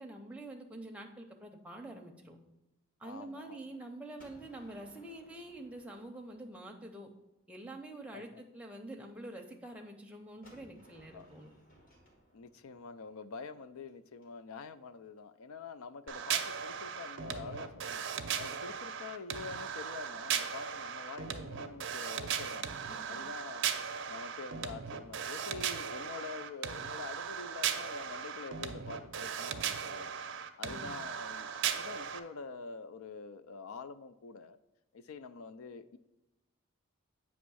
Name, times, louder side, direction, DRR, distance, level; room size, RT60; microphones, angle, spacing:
voice 1, 0.0-2.4 3.0-7.1 7.5-11.5 22.9-23.2 30.6-31.0, right 1 dB, 5° right, 2 dB, 0.6 m, -47 dB
voice 2, 3.0-3.8 8.1-8.4 11.1-11.3 12.3-18.0 18.3-30.1 30.6-34.6 34.9-36.0, left 5 dB, 70° left, 12 dB, 0.4 m, -46 dB
Gunshot gunfire, 4.2-7.0 10.4-14.2, equal, 40° left, 1.4 m, -62 dB
sound 1, 16.1-32.2, right 8 dB, 55° right, 0.5 m, -37 dB
8.3 x 3.0 x 6.2 m, 0.96 s
head